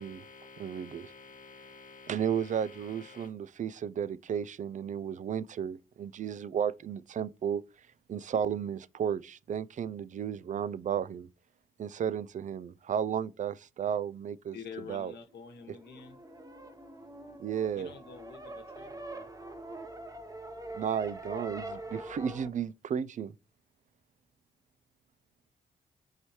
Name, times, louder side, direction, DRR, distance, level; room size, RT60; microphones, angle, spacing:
voice 1, 0.0-3.3, left 4 dB, 45° left, 0.7 m, -51 dB
voice 2, 0.6-1.1 2.1-7.6 8.1-11.3 11.8-14.6 14.9-15.1 17.4-17.9 20.7-23.3, right 8 dB, 45° right, 0.4 m, -33 dB
voice 3, 14.5-16.2 17.7-19.3, left 6 dB, 65° left, 1.1 m, -47 dB
sound 1, 15.4-22.5, right 1 dB, 20° right, 0.9 m, -44 dB
4.8 x 2.7 x 3.0 m
hypercardioid pair, 45°, 18 cm